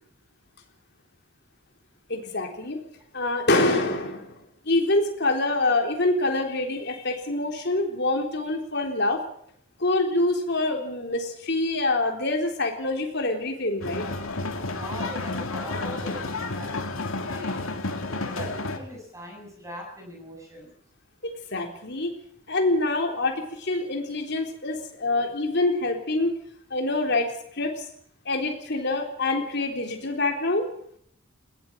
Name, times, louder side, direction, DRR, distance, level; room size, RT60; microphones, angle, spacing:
voice 1, 2.1-2.8 3.1-9.2 9.8-14.0 21.2-22.1 22.5-26.3 26.7-27.9 28.3-30.7, left 2 dB, 55° left, 3 dB, 3.8 m, -26 dB
sound 1, 13.8-18.8, left 2 dB, 85° left, 2.5 m, -31 dB
voice 2, 14.7-16.8 17.2-20.7, equal, 15° right, 1 dB, 7.9 m, -41 dB
21.0 x 17.0 x 7.5 m, 0.66 s
head